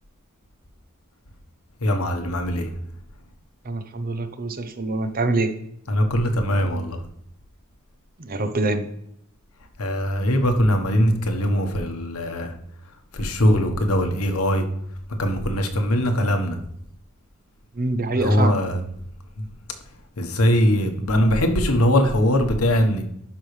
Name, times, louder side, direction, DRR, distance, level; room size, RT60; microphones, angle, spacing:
voice 1, 1.8-2.7 5.9-7.0 9.8-12.5 13.1-14.6 15.2-16.6 18.1-18.9 20.2-23.0, equal, 70° left, 5 dB, 1.3 m, -21 dB
voice 2, 3.6-5.5 8.2-8.9 17.8-18.6, right 2 dB, 40° right, 9 dB, 0.7 m, -25 dB
11.5 x 5.5 x 3.3 m, 0.74 s
head